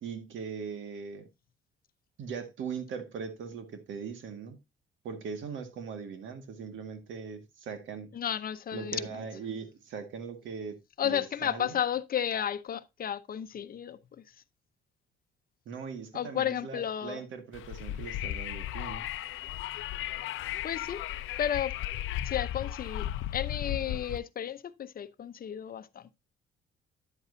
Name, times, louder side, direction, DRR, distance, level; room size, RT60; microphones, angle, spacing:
voice 1, 0.0-1.3 2.2-4.6 5.0-8.1 8.7-10.8 11.0-11.8 15.7-19.1, right 6 dB, 75° right, 1.8 m, -40 dB
voice 2, 8.1-9.2 11.0-14.3 16.1-17.2 20.6-21.0 21.4-21.8 22.2-23.1 23.3-26.1, left 9 dB, 45° left, 0.8 m, -33 dB
Wind, 17.5-24.2, left 12 dB, 85° left, 0.6 m, -35 dB
10.5 x 8.0 x 2.7 m
cardioid pair, 90°, 20 cm